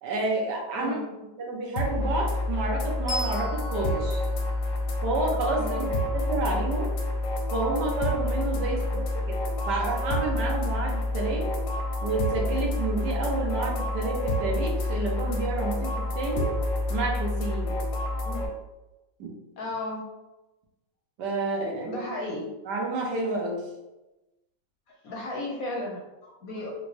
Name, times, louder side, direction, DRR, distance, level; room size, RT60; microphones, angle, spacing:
voice 1, 0.0-0.9 1.4-4.2 5.0-5.9 6.1-6.9 7.5-11.5 12.0-16.5 16.9-17.7 19.2-19.3 21.2-22.0 22.7-23.6, right 3 dB, 70° right, -1 dB, 1.3 m, -30 dB
voice 2, 0.7-1.1 5.5-5.9 8.7-9.0 18.2-18.5 19.6-20.0 21.8-22.5 24.9-26.7, left 2 dB, 65° left, -2 dB, 1.0 m, -35 dB
sound 1, 1.8-18.5, left 1 dB, 90° left, 1.5 m, -28 dB
Bell, 3.1-6.2, equal, 5° right, 0.4 m, -39 dB
4.1 x 2.5 x 3.1 m, 1.0 s
omnidirectional pair, 2.0 m